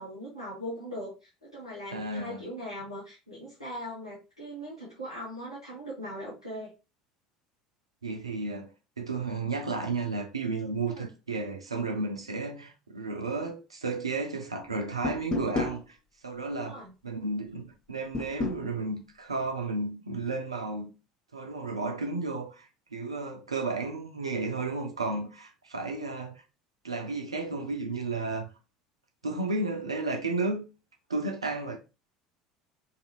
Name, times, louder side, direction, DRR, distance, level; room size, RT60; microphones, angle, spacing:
voice 1, 0.0-6.7 10.9-11.1 16.5-16.9, equal, 85° left, 0.9 m, -40 dB
voice 2, 1.9-2.4 8.0-8.7 9.0-16.0 16.2-20.9 21.3-26.4 26.8-28.5 29.2-30.7 31.1-31.8, right 3 dB, 80° right, 0.4 m, -33 dB
sound 1, 15.0-15.8 18.1-18.6, left 3 dB, 30° left, 0.6 m, -30 dB
2.5 x 2.5 x 2.8 m
figure-of-eight pair, 65°, 3 cm